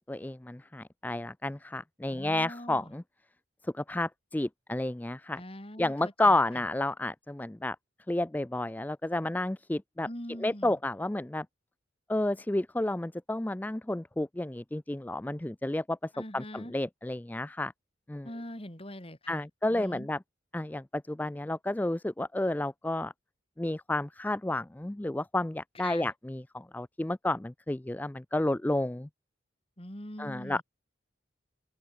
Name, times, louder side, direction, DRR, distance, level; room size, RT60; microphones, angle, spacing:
voice 1, 0.1-3.0 3.7-5.4 5.8-7.8 8.1-10.1 10.4-11.5 12.1-16.0 16.3-17.7 18.1-18.3 19.3-20.2 20.5-23.1 23.6-29.1 30.2-30.6, left 1 dB, 10° left, 0.3 m, -31 dB
voice 2, 2.1-2.9 5.4-6.4 10.1-10.8 16.1-16.7 18.2-20.1 25.7-26.1 29.8-30.6, left 1 dB, 30° left, 4.1 m, -43 dB
open air
head